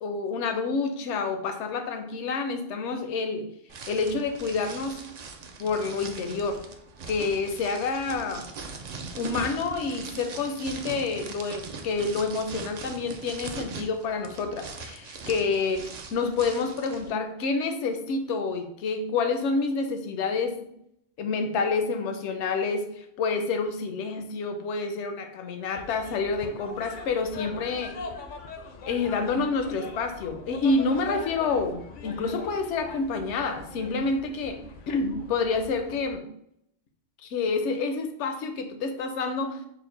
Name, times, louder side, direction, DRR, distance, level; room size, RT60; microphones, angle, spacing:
voice 1, 0.0-3.5 3.9-5.0 5.6-6.6 7.1-8.4 9.2-20.7 21.2-28.0 28.8-36.3 37.2-39.6, left 4 dB, 80° left, 6 dB, 0.9 m, -28 dB
sound 1, 3.7-17.1, right 4 dB, 65° right, 0.4 m, -41 dB
sound 2, 25.7-36.1, left 4 dB, 60° left, 0.5 m, -42 dB
4.5 x 2.0 x 3.8 m, 0.73 s
omnidirectional pair, 1.2 m